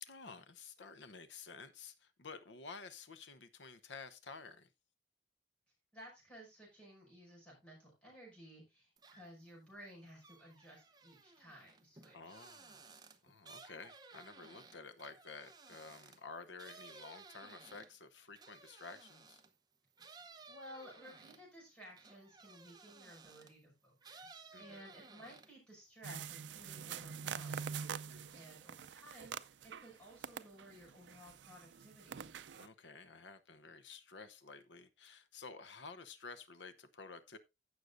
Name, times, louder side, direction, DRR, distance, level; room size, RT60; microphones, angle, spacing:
voice 1, 0.0-4.7 12.1-12.9 13.2-19.4 24.5-24.8 28.1-28.4 32.6-37.4, left 4 dB, 85° left, 0.9 m, -52 dB
voice 2, 5.9-12.5 20.5-27.7 28.3-32.3, equal, 5° left, 5.7 m, -56 dB
sound 1, 9.0-9.5 9.8-19.6 20.0-23.6 24.0-25.7 26.0-26.7, right 4 dB, 25° right, 0.8 m, -58 dB
sound 2, 26.0-29.9 30.2-32.7, right 7 dB, 85° right, 0.5 m, -45 dB
15.5 x 6.5 x 2.6 m
head